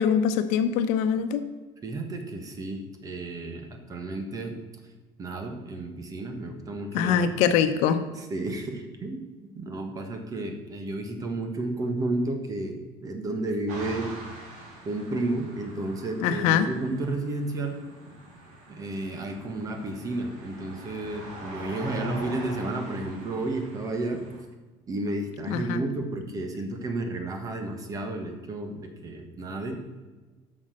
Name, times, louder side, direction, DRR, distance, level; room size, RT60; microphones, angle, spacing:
voice 1, 0.0-1.4 6.9-8.0 16.2-16.7 25.5-25.8, left 8 dB, 80° left, 9 dB, 0.9 m, -23 dB
voice 2, 1.8-4.5 5.2-7.3 8.3-9.3 9.5-14.1 14.8-17.8 18.7-24.2 24.9-29.8, right 2 dB, 30° right, 5 dB, 1.4 m, -32 dB
sound 1, 13.7-24.4, right 2 dB, 80° right, 2.9 m, -43 dB
8.5 x 6.5 x 6.4 m, 1.2 s
cardioid pair, 145°, 12 cm